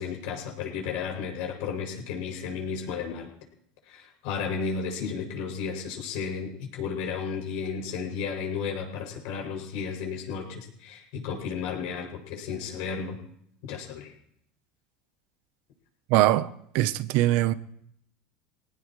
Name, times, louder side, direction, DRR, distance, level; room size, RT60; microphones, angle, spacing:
voice 1, 0.0-3.3 3.9-13.2 13.7-14.1, left 6 dB, 70° left, 7.1 m, -33 dB
voice 2, 16.1-16.5 16.7-17.5, right 15 dB, 65° right, 0.9 m, -22 dB
23.0 x 18.5 x 3.3 m
supercardioid pair, 130°, 3 cm